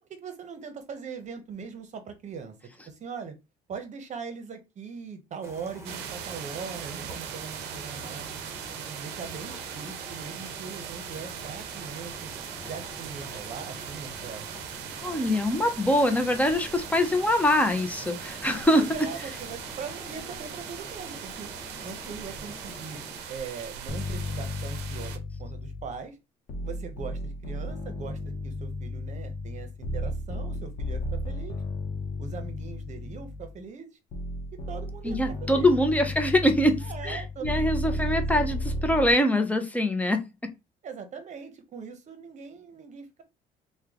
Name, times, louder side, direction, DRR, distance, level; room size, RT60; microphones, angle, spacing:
voice 1, 0.1-2.6 2.9-3.3 3.7-8.3 8.8-12.3 12.7-14.5 18.7-21.5 21.8-23.0 23.3-26.2 26.6-31.6 32.2-34.0 34.5-36.2 36.8-38.6 40.8-43.2, right 6 dB, 45° right, 0.9 m, -41 dB
sound 1, 5.4-23.2, equal, 15° right, 1.1 m, -46 dB
sound 2, 5.8-25.2, right 8 dB, 90° right, 0.6 m, -40 dB
voice 2, 15.0-18.9 35.0-40.2, left 1 dB, 10° left, 0.7 m, -24 dB
sound 3, 23.9-26.0 26.5-33.6 34.1-39.1, left 1 dB, 55° left, 0.8 m, -33 dB
3.1 x 2.2 x 3.6 m
cardioid pair, 110°, 17 cm